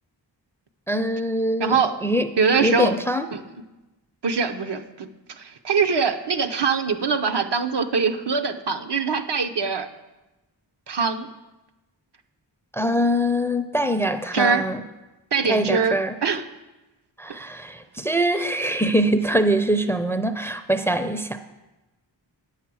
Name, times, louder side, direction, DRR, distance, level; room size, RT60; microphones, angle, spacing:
voice 1, 0.9-1.8 2.0-2.3 2.6-3.3 12.7-14.8 15.5-16.1 17.2-21.4, equal, 5° left, 9 dB, 0.5 m, -23 dB
voice 2, 1.6-1.9 2.4-3.0 3.3-3.4 4.2-5.1 5.4-9.9 10.9-11.3 14.3-14.6 15.3-16.0 16.2-16.4, right 5 dB, 65° right, 6 dB, 0.7 m, -23 dB
8.9 x 7.3 x 6.1 m, 1.1 s
wide cardioid pair, 85°, 44 cm